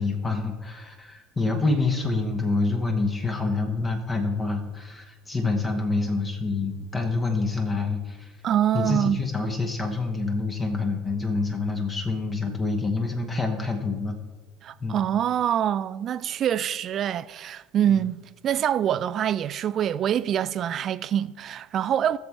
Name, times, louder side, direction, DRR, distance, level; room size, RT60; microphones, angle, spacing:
voice 1, 0.0-8.3 8.7-14.1 14.8-15.0, left 3 dB, 20° left, 1.2 m, -27 dB
voice 2, 8.4-9.2 14.6-22.2, right 10 dB, 40° right, 0.3 m, -25 dB
15.0 x 7.0 x 3.3 m
figure-of-eight pair, 65°, 0 cm